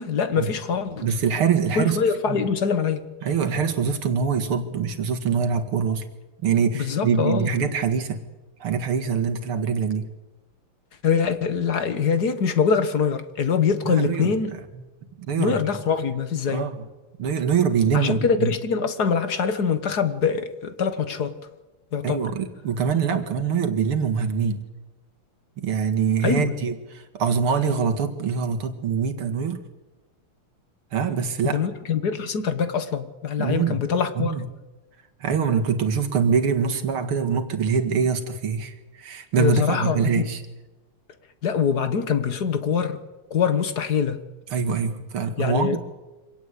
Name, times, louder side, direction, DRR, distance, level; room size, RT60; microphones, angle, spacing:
voice 1, 0.0-1.1 1.7-3.0 6.7-7.5 11.0-14.5 15.4-16.7 17.9-21.3 21.9-22.3 26.2-26.5 31.4-34.3 39.3-40.3 41.4-43.0 43.3-44.2 45.4-45.8, left 6 dB, 50° left, 1.8 m, -24 dB
voice 2, 1.0-2.0 2.3-2.4 3.2-6.1 6.4-8.2 8.6-10.1 13.8-14.6 15.3-15.6 16.5-16.8 17.2-18.5 22.0-24.6 25.6-29.6 30.9-31.6 33.4-33.8 34.2-34.5 35.2-40.4 44.5-45.8, right 6 dB, 80° right, 2.8 m, -24 dB
25.5 x 17.5 x 8.3 m
omnidirectional pair, 2.3 m